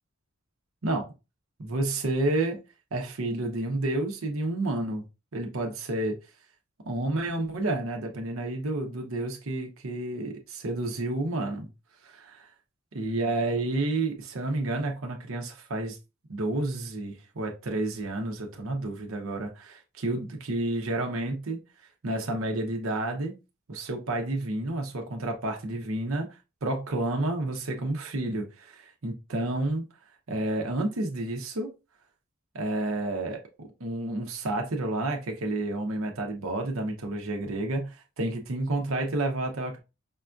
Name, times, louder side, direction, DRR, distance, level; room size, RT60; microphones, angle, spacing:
voice 1, 1.6-2.6 2.9-5.1 5.3-6.2 6.8-11.7 12.0-12.5 12.9-16.0 16.3-21.6 22.0-23.3 23.7-26.3 26.6-29.8 30.3-31.7 32.5-39.8, right 2 dB, 75° right, 0.8 m, -30 dB
5.3 x 2.3 x 2.5 m
head